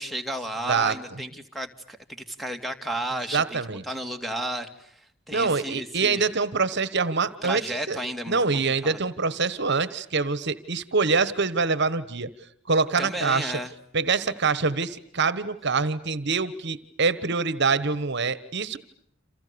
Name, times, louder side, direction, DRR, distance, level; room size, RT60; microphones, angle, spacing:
voice 1, 0.0-2.0 2.3-4.9 5.3-6.3 7.4-8.4 8.8-9.0 13.0-13.7, right 1 dB, ahead, 7 dB, 2.4 m, -32 dB
voice 2, 0.6-0.9 3.3-3.8 5.3-8.0 8.3-12.3 12.7-13.6 13.9-18.8, right 4 dB, 55° right, 15 dB, 1.3 m, -25 dB
29.0 x 28.5 x 6.9 m, 0.68 s
head